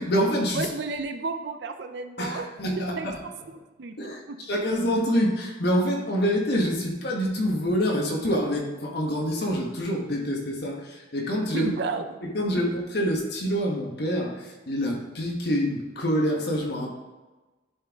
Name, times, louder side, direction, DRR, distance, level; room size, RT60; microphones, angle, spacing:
voice 1, 0.0-0.7 2.2-3.0 4.0-11.7 12.3-16.9, equal, 55° left, 0 dB, 1.1 m, -26 dB
voice 2, 0.5-2.5 3.0-4.5 11.5-12.6, right 3 dB, 60° right, 7 dB, 0.5 m, -33 dB
10.5 x 4.4 x 3.5 m, 1.2 s
head